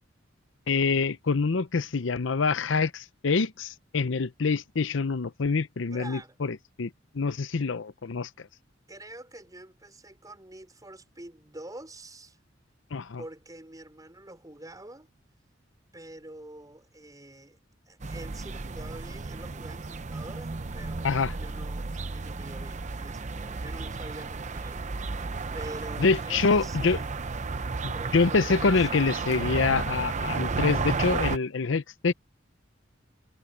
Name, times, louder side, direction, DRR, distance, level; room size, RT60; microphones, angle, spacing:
voice 1, 0.7-8.3 12.9-13.2 21.0-21.3 26.0-27.0 27.8-32.1, left 4 dB, 70° left, 0.7 m, -26 dB
voice 2, 5.9-6.4 8.9-12.4 13.2-15.1 15.9-17.6 17.9-27.1 27.9-29.1, right 1 dB, 20° right, 5.2 m, -46 dB
sound 1, 18.0-31.4, right 4 dB, 40° right, 0.7 m, -33 dB
head